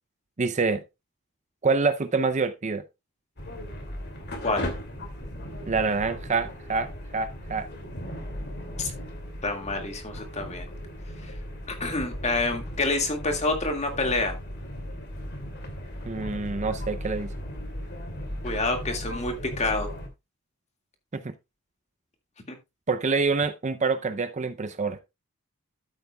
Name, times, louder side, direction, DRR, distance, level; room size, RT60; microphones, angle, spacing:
voice 1, 0.4-0.8 1.6-2.8 5.7-7.7 16.0-17.3 21.1-21.3 22.9-25.0, right 4 dB, 30° right, 0.5 m, -26 dB
sound 1, 3.4-20.1, equal, 50° left, 2.5 m, -37 dB
voice 2, 9.4-10.7 11.2-11.3 11.7-14.4 18.4-19.9 22.5-22.6, left 2 dB, 30° left, 2.0 m, -28 dB
13.5 x 8.1 x 2.3 m
head